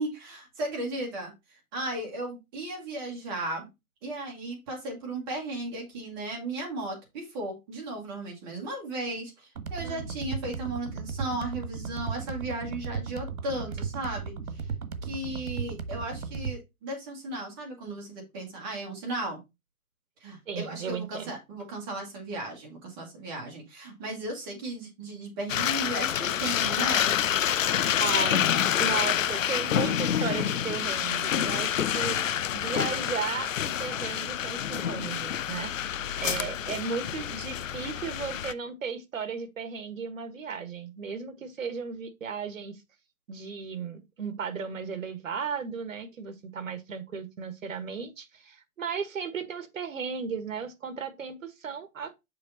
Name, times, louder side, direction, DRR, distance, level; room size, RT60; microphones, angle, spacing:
voice 1, 0.0-3.7 4.0-14.6 15.0-19.4 20.2-27.1, right 2 dB, 15° right, 1.7 m, -35 dB
sound 1, 9.6-16.6, right 5 dB, 85° right, 1.4 m, -35 dB
voice 2, 20.5-21.3 28.0-32.2 32.5-42.8 43.3-52.1, right 6 dB, 65° right, 1.6 m, -35 dB
sound 2, 25.5-38.5, left 10 dB, 60° left, 0.6 m, -28 dB
6.7 x 4.9 x 4.1 m
hypercardioid pair, 170°, 43 cm